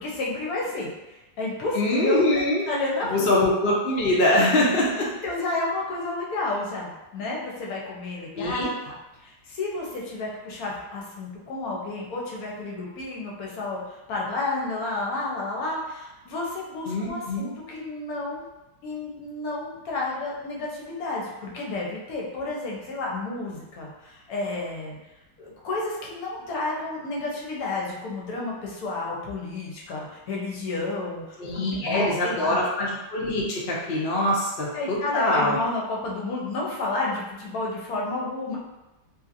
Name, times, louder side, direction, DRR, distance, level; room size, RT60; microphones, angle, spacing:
voice 1, 0.0-3.4 4.4-4.5 5.2-9.0 9.2-18.5 18.8-25.0 25.4-32.6 34.1-34.2 34.7-38.6, left 2 dB, 65° left, -3 dB, 1.0 m, -31 dB
voice 2, 1.7-2.6 3.1-5.1 8.3-8.7 16.9-17.5 31.4-35.6, left 1 dB, 85° left, -4 dB, 0.5 m, -23 dB
2.7 x 2.7 x 2.5 m, 1.0 s
omnidirectional pair, 1.9 m